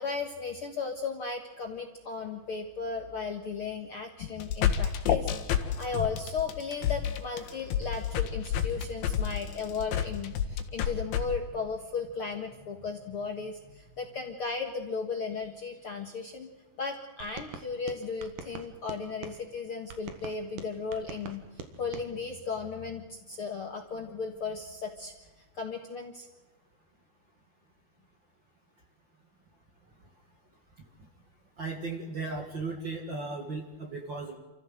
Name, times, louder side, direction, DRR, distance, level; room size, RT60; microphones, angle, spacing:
voice 1, 0.0-5.3 5.8-16.5 16.8-21.4 21.8-25.1 25.5-26.3, left 5 dB, 50° left, 3 dB, 1.8 m, -35 dB
sound 1, 4.2-11.2, left 9 dB, 75° left, 3.3 m, -28 dB
sound 2, 17.2-19.4 19.9-22.1, right 5 dB, 65° right, 3.1 m, -44 dB
voice 2, 31.6-34.4, right 3 dB, 40° right, 3 dB, 1.9 m, -36 dB
28.5 x 15.0 x 7.9 m, 1.2 s
omnidirectional pair, 4.3 m